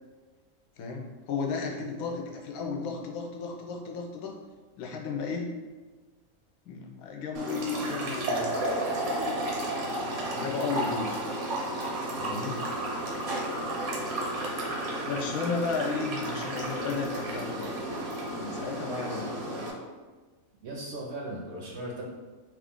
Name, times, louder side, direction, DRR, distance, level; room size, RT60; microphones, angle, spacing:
voice 1, 0.8-4.3 4.8-5.6 6.7-8.7 9.8-11.1 12.2-12.6 15.1-17.7 18.3-19.6, left 4 dB, 85° left, 1 dB, 1.0 m, -34 dB
sound 1, 7.3-19.7, right 1 dB, 85° right, 1.2 m, -32 dB
voice 2, 20.6-22.1, right 1 dB, 65° right, -2 dB, 0.7 m, -37 dB
3.0 x 2.4 x 3.5 m, 1.3 s
omnidirectional pair, 1.5 m